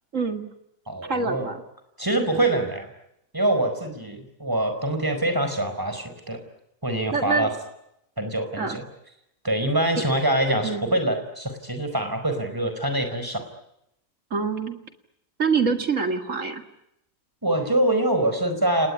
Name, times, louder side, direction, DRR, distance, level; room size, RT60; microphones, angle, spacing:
voice 1, 0.1-0.5 1.0-1.6 7.1-7.5 8.6-8.8 9.9-10.0 10.6-10.9 14.3-14.8 15.4-16.6, right 4 dB, 55° right, 7 dB, 2.4 m, -25 dB
voice 2, 0.9-1.5 2.0-2.9 3.3-6.4 6.8-7.5 8.2-8.8 9.4-13.4 17.4-18.9, right 1 dB, 15° right, 7 dB, 4.8 m, -24 dB
30.0 x 19.5 x 9.8 m, 0.82 s
omnidirectional pair, 1.6 m